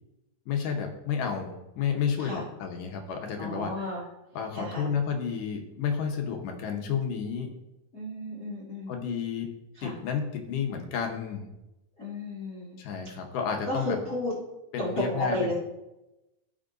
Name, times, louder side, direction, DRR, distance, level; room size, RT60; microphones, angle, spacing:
voice 1, 0.5-3.7 4.4-7.5 8.9-9.5 9.8-11.5 12.8-14.0 14.7-15.5, left 7 dB, 70° left, 3 dB, 2.4 m, -31 dB
voice 2, 3.4-4.0 4.5-4.8 7.9-8.9 9.8-10.0 12.0-12.8 13.7-14.3 14.8-15.5, left 1 dB, 30° left, -7 dB, 2.0 m, -32 dB
16.0 x 5.6 x 2.6 m, 0.96 s
omnidirectional pair, 4.1 m